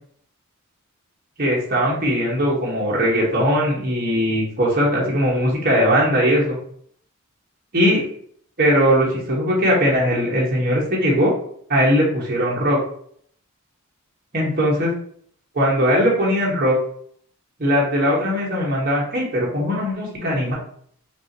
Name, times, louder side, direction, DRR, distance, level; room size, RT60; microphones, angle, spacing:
voice 1, 1.4-6.6 7.7-8.0 8.6-11.3 11.7-12.8 14.3-14.9 15.5-16.7 17.6-20.5, equal, 45° right, -5 dB, 1.2 m, -19 dB
5.9 x 2.5 x 2.9 m, 0.62 s
head